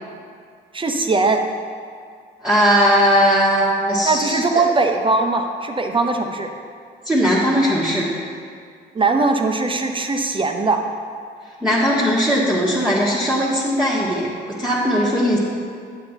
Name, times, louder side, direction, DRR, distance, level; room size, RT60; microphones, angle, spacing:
voice 1, 0.7-1.4 4.0-6.5 8.9-10.8, right 3 dB, 25° right, 4 dB, 0.9 m, -20 dB
voice 2, 2.4-4.6 7.0-8.1 11.6-15.4, equal, 5° right, -8 dB, 1.5 m, -18 dB
9.4 x 7.2 x 4.5 m, 2.2 s
cardioid pair, 90°, 20 cm